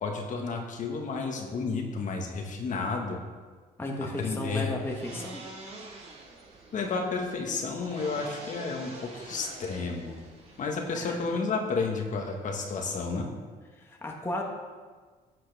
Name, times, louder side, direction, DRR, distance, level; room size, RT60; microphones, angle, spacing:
voice 1, 0.0-3.2 4.0-4.7 6.7-10.2 10.6-13.3, left 4 dB, 50° left, 2 dB, 1.5 m, -31 dB
voice 2, 3.8-5.4 10.9-11.2 13.7-14.4, left 1 dB, 15° left, 0 dB, 1.2 m, -34 dB
sound 1, 3.8-10.9, right 3 dB, 40° right, 2.1 m, -46 dB
12.5 x 7.6 x 3.5 m, 1.5 s
cardioid pair, 110°, 17 cm